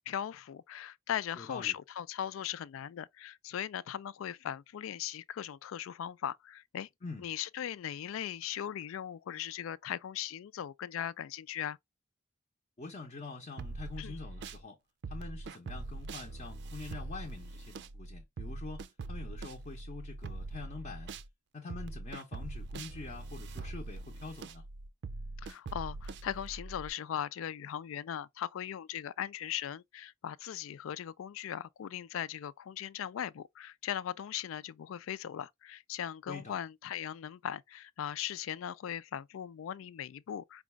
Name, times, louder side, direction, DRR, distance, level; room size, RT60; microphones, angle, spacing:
voice 1, 0.1-6.9 7.2-11.8 14.0-14.2 25.4-40.6, left 10 dB, 90° left, 0.3 m, -39 dB
voice 2, 1.4-1.8 7.0-7.3 12.8-14.8 15.1-21.1 21.5-24.6 36.2-36.6, left 3 dB, 40° left, 0.8 m, -45 dB
sound 1, 13.6-14.6 15.0-21.3 21.7-26.9, right 2 dB, 60° right, 0.4 m, -42 dB
5.0 x 2.3 x 3.2 m
head